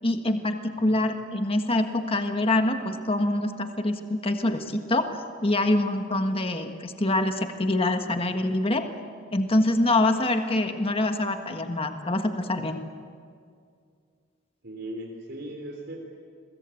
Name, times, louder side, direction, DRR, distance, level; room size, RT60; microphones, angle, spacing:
voice 1, 0.0-8.9 9.3-12.8, left 2 dB, 30° left, 6 dB, 1.5 m, -25 dB
voice 2, 14.6-16.0, right 1 dB, 55° right, 1 dB, 3.6 m, -38 dB
30.0 x 22.5 x 8.5 m, 2.2 s
head